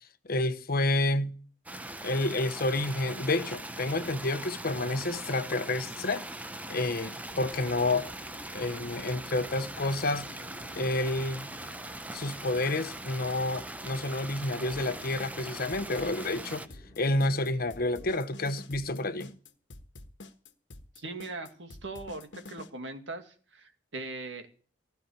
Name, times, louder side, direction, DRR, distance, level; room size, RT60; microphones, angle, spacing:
voice 1, 0.3-1.4 2.0-6.2 6.7-8.1 8.5-10.3 10.7-11.5 12.1-16.6 17.0-19.4, left 2 dB, 55° left, 1.0 m, -29 dB
sound 1, 1.7-16.7, right 1 dB, 10° right, 0.7 m, -41 dB
sound 2, 7.3-18.1, equal, 20° left, 2.6 m, -53 dB
sound 3, 14.7-22.7, left 2 dB, 75° left, 1.4 m, -48 dB
voice 2, 21.0-24.5, right 2 dB, 75° right, 2.2 m, -40 dB
16.0 x 5.9 x 9.4 m
head